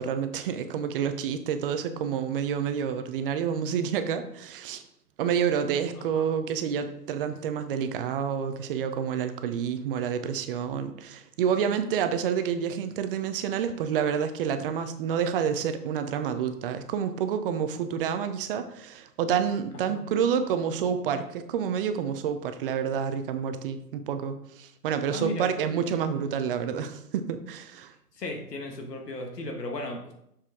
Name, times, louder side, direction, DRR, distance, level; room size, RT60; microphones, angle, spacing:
voice 1, 0.0-4.8 5.2-27.9, right 7 dB, 35° right, 9 dB, 0.7 m, -28 dB
voice 2, 25.1-25.5 28.2-30.1, left 1 dB, 80° left, 3 dB, 1.6 m, -35 dB
6.6 x 5.8 x 3.6 m, 0.74 s
hypercardioid pair, 125°, 48 cm